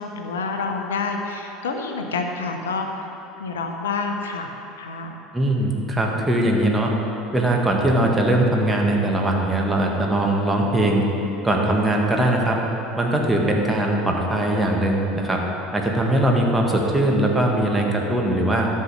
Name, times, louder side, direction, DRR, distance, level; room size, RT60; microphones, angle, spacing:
voice 1, 0.0-3.1 3.4-5.1 11.5-11.7, left 4 dB, 75° left, 4 dB, 0.8 m, -28 dB
voice 2, 5.3-6.9 7.3-11.0 11.4-12.6 13.0-15.4 15.7-18.7, right 1 dB, 15° right, 0 dB, 1.8 m, -20 dB
12.5 x 5.5 x 7.0 m, 3.0 s
figure-of-eight pair, 70°, 0 cm